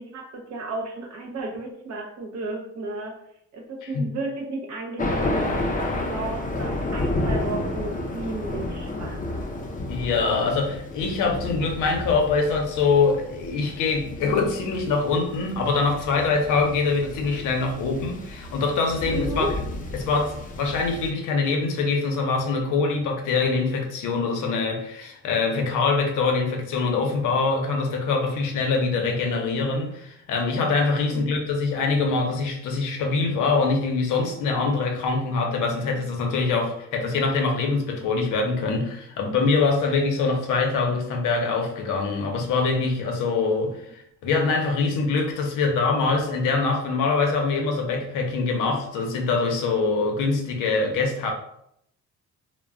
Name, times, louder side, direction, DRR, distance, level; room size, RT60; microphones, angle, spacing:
voice 1, 0.0-3.2 3.5-9.2 19.1-19.5 31.1-31.4 40.9-41.0, right 2 dB, 60° right, 1 dB, 0.8 m, -33 dB
Thunder, 5.0-21.1, left 2 dB, 30° left, 0.5 m, -31 dB
voice 2, 9.9-19.5 19.9-51.3, left 4 dB, 85° left, 2 dB, 0.6 m, -24 dB
2.2 x 2.0 x 3.6 m, 0.75 s
cardioid pair, 90°, 30 cm